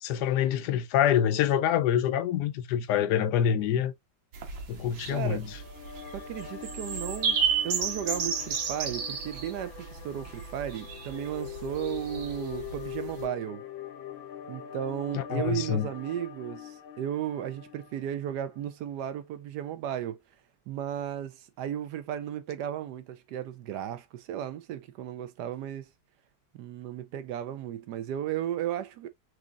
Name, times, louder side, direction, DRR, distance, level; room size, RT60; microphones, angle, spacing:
voice 1, 0.0-3.9 4.7-5.5 15.1-15.9, left 9 dB, 70° left, 1.0 m, -26 dB
sound 1, 4.3-13.2, right 6 dB, 90° right, 2.0 m, -33 dB
voice 2, 5.1-5.4 6.1-7.4 7.6-13.6 14.5-20.2 20.7-25.9 26.5-29.1, right 10 dB, 70° right, 1.0 m, -35 dB
sound 2, 5.2-18.6, left 10 dB, 90° left, 1.6 m, -43 dB
6.2 x 2.8 x 2.4 m
omnidirectional pair, 2.1 m